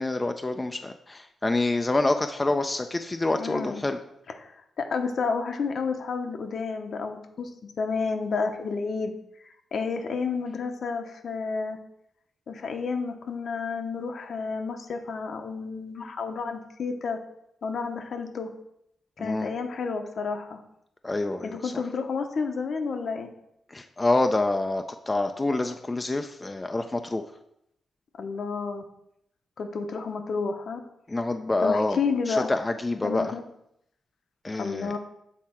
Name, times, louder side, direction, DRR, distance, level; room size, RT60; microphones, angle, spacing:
voice 1, 0.0-4.0 19.2-19.5 21.0-21.7 23.7-27.2 31.1-32.0 32.3-33.3 34.4-34.9, left 2 dB, 20° left, 6 dB, 0.4 m, -27 dB
voice 2, 3.3-3.8 4.4-4.5 4.8-9.1 9.7-11.8 12.5-17.2 17.6-18.5 19.2-20.6 21.4-23.3 28.2-28.8 29.6-30.8 31.6-32.5 33.0-33.4 34.6-35.0, left 5 dB, 65° left, 6 dB, 0.8 m, -30 dB
7.5 x 3.6 x 4.3 m, 0.77 s
cardioid pair, 95°, 0 cm